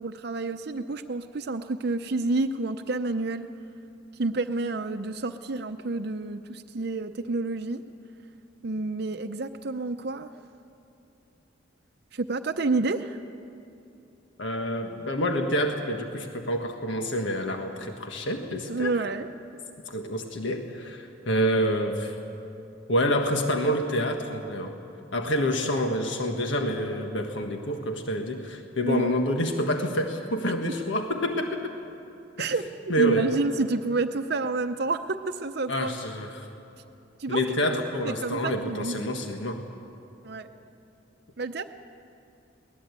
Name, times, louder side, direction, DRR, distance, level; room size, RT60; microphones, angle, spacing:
voice 1, 0.0-3.5 4.2-7.8 8.6-10.3 12.1-13.2 18.7-19.3 28.8-29.1 32.4-32.6 33.0-36.0 37.2-37.4 38.0-39.2 40.2-40.5 41.4-41.6, right 3 dB, 55° right, 7 dB, 0.7 m, -29 dB
voice 2, 14.4-18.9 19.9-22.1 22.9-24.7 25.1-31.7 32.4-32.5 32.9-33.3 35.7-36.5 37.3-39.6, equal, 70° left, 4 dB, 1.5 m, -27 dB
23.0 x 19.0 x 8.2 m, 2.8 s
head